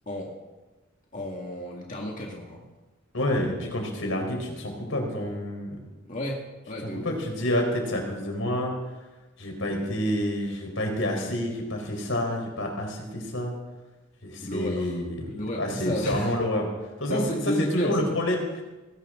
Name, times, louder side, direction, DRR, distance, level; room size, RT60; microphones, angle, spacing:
voice 1, 1.1-2.6 6.1-7.1 9.6-9.8 14.4-15.0 15.3-16.3 17.1-18.1, equal, 40° left, -1 dB, 2.0 m, -32 dB
voice 2, 3.1-5.8 6.8-8.7 9.4-13.5 14.2-16.7 17.0-18.6, left 1 dB, 75° left, 2 dB, 4.2 m, -28 dB
20.0 x 18.0 x 3.8 m, 1.2 s
head